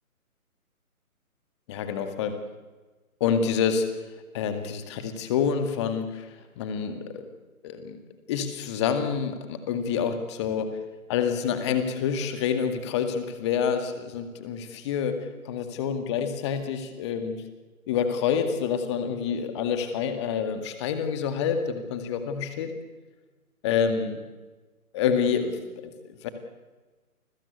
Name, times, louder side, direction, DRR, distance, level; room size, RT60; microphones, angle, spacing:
voice 1, 1.7-2.4 3.2-3.9 4.3-6.3 6.6-7.3 7.6-8.0 8.3-10.7 11.1-17.4 17.9-22.7 23.6-24.2 24.9-26.3, left 7 dB, 20° left, 8 dB, 2.0 m, -27 dB
29.5 x 20.5 x 8.4 m, 1.3 s
figure-of-eight pair, 145°, 44 cm